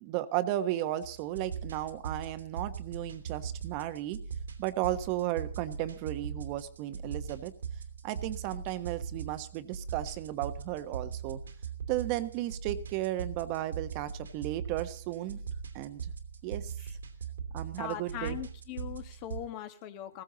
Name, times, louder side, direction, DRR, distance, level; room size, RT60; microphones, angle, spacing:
voice 1, 0.0-4.2 4.6-7.5 8.0-11.4 11.9-15.4 15.7-16.1 16.4-16.7 17.5-18.4, right 14 dB, 40° right, 10 dB, 1.2 m, -34 dB
sound 1, 1.0-19.4, right 7 dB, 90° right, 2.8 m, -40 dB
voice 2, 17.8-20.2, left 12 dB, 40° left, 8 dB, 1.8 m, -40 dB
16.5 x 15.5 x 4.0 m, 0.42 s
hypercardioid pair, 140°, 0 cm